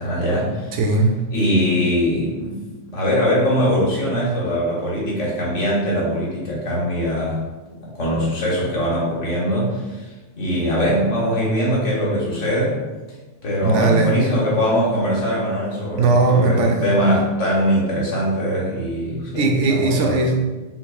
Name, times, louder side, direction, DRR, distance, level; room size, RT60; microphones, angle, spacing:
voice 1, 0.0-0.7 1.3-2.6 2.9-7.4 8.0-10.0 10.4-12.8 13.4-20.2, equal, 75° left, -5 dB, 1.6 m, -21 dB
voice 2, 0.7-1.3 13.6-14.1 15.9-17.0 19.4-20.5, right 3 dB, 75° right, 2 dB, 0.9 m, -18 dB
5.3 x 2.9 x 2.3 m, 1.2 s
omnidirectional pair, 1.3 m